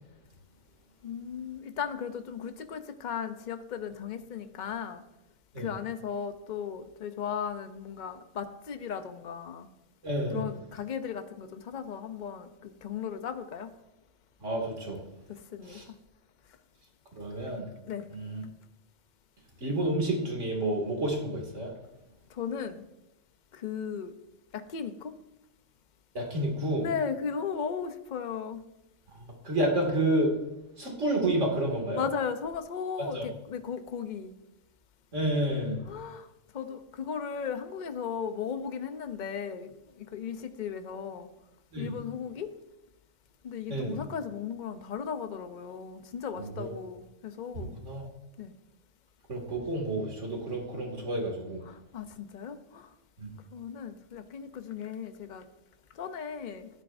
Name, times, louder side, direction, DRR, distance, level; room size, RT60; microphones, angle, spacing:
voice 1, 1.0-5.0 5.6-9.7 10.3-13.7 15.3-15.8 17.8-18.1 22.3-22.8 23.5-24.1 24.5-25.1 26.8-28.6 32.0-34.3 35.9-36.3 36.5-41.3 41.8-42.5 43.4-47.8 48.4-48.5 51.7-52.9 53.5-55.5 55.9-56.7, left 7 dB, 45° left, 9 dB, 0.8 m, -36 dB
voice 2, 10.0-10.4 14.4-15.0 15.7-15.8 17.2-17.7 18.1-18.4 19.6-21.7 26.1-26.9 29.1-30.4 30.8-32.0 33.0-33.3 35.1-35.8 41.7-41.9 43.7-44.0 46.3-46.7 47.5-48.0 49.3-51.6 53.2-53.3, right 1 dB, 70° right, 0 dB, 2.7 m, -30 dB
12.5 x 10.0 x 2.6 m, 0.90 s
omnidirectional pair, 1.3 m